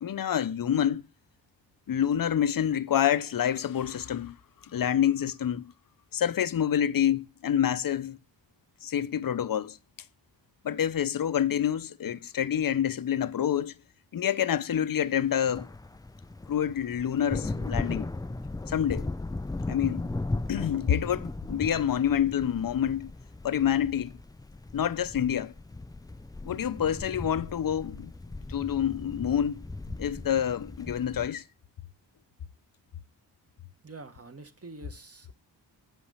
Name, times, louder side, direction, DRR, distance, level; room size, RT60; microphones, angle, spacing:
voice 1, 0.0-1.0 1.9-4.4 4.6-5.7 6.1-8.2 8.8-9.8 10.6-13.7 14.1-15.7 16.5-18.1 18.7-19.1 19.7-20.1 20.5-23.1 23.4-24.2 24.7-25.5 26.5-28.1 28.5-29.7 30.0-31.4, left 9 dB, 50° left, 0.6 m, -27 dB
sound 1, 15.3-31.3, left 2 dB, 10° left, 0.3 m, -37 dB
voice 2, 33.8-35.3, right 3 dB, 30° right, 1.3 m, -46 dB
7.8 x 5.8 x 5.5 m
cardioid pair, 50°, 45 cm